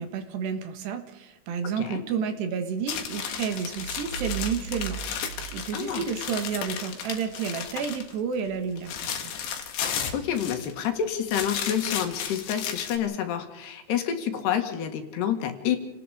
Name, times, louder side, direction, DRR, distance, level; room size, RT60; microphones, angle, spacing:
voice 1, 0.0-9.3, right 6 dB, 70° right, 8 dB, 3.5 m, -31 dB
sound 1, 2.9-8.1 8.5-10.9 11.2-13.0, left 8 dB, 90° left, 4.3 m, -34 dB
sound 2, 3.8-6.6, right 9 dB, 45° right, 3.4 m, -38 dB
voice 2, 5.7-6.0 10.1-15.8, left 9 dB, 65° left, 5 dB, 3.6 m, -28 dB
29.5 x 19.0 x 5.0 m, 0.92 s
omnidirectional pair, 5.3 m